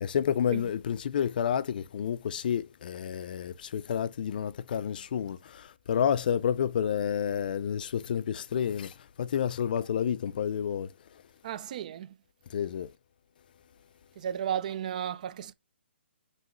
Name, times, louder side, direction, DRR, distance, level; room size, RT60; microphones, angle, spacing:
voice 1, 0.0-5.4 5.9-8.9 9.2-10.9 12.5-12.9, left 8 dB, 45° left, 0.4 m, -29 dB
voice 2, 11.4-12.2 14.2-15.5, right 9 dB, 40° right, 0.5 m, -34 dB
5.4 x 3.0 x 3.0 m
hypercardioid pair, 155°, 6 cm